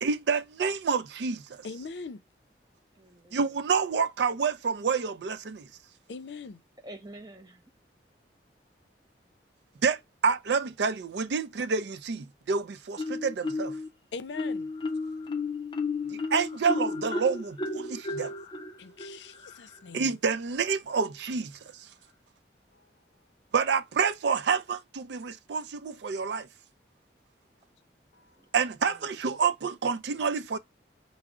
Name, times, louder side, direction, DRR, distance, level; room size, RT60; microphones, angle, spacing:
voice 1, 0.0-1.6 3.3-5.7 9.8-13.8 16.1-18.3 19.9-21.6 23.5-26.5 28.5-30.6, right 5 dB, 80° right, 0.4 m, -28 dB
voice 2, 1.6-2.2 6.1-6.6 14.1-14.7 18.8-20.2 22.7-22.9 28.1-28.3, left 4 dB, 85° left, 0.5 m, -41 dB
voice 3, 2.9-3.6 6.8-7.7 28.4-29.1, right 1 dB, 20° right, 0.6 m, -49 dB
Marimba xylophone, 13.0-13.9 14.3-19.9, left 3 dB, 25° left, 0.5 m, -33 dB
4.9 x 2.0 x 3.5 m
head